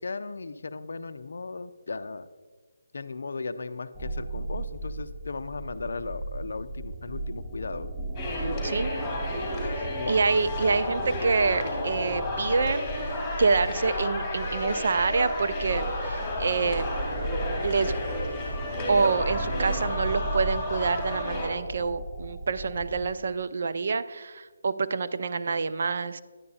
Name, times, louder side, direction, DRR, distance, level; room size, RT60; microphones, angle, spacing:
voice 1, 0.0-2.3 2.9-7.9 9.9-10.2, left 4 dB, 65° left, 12 dB, 0.4 m, -36 dB
sound 1, 4.0-23.1, right 2 dB, 5° right, 0.7 m, -35 dB
sound 2, 8.2-21.5, left 1 dB, 10° left, 2.5 m, -32 dB
voice 2, 9.8-12.9 13.4-16.9 17.6-17.9 18.9-26.2, right 4 dB, 55° right, 12 dB, 0.4 m, -27 dB
11.0 x 9.5 x 2.8 m, 1.4 s
figure-of-eight pair, 160°, 0 cm